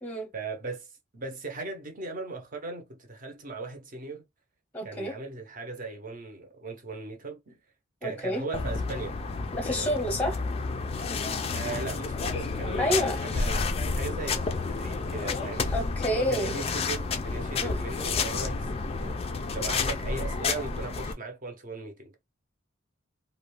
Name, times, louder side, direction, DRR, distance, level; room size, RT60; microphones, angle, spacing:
voice 1, 0.3-0.9 1.1-4.2 4.8-7.6 8.0-9.2 9.8-10.0 11.5-13.7 13.9-15.7 16.1-22.2, right 3 dB, 40° right, 0.6 m, -38 dB
voice 2, 4.7-5.1 8.0-8.4 9.5-10.4 12.8-13.2 15.7-16.5 17.6-17.8, equal, 10° left, 0.7 m, -29 dB
sound 1, 8.5-21.1, left 4 dB, 30° left, 0.3 m, -30 dB
2.4 x 2.1 x 3.0 m
head